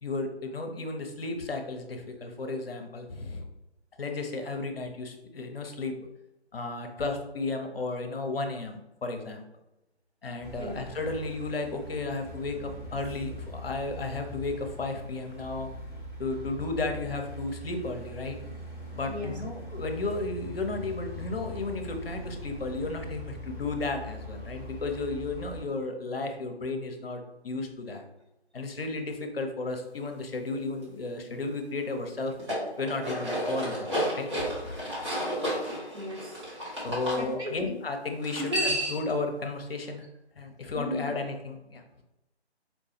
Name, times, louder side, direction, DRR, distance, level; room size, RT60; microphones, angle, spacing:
voice 1, 0.0-3.4 4.0-5.9 6.5-9.4 10.2-15.7 16.2-18.4 18.9-28.0 28.5-32.3 32.8-34.8 36.8-40.0 40.4-42.0, left 3 dB, 60° left, 4 dB, 0.7 m, -34 dB
sound 1, 10.4-25.6, left 1 dB, 10° right, 1.3 m, -41 dB
sound 2, 32.3-37.2 38.2-39.1, equal, 25° right, 1.1 m, -31 dB
voice 2, 35.9-36.4 37.2-37.8 38.4-38.7 40.7-41.1, equal, 75° right, 1 dB, 1.1 m, -35 dB
4.2 x 2.3 x 2.8 m, 0.95 s
figure-of-eight pair, 150°, 33 cm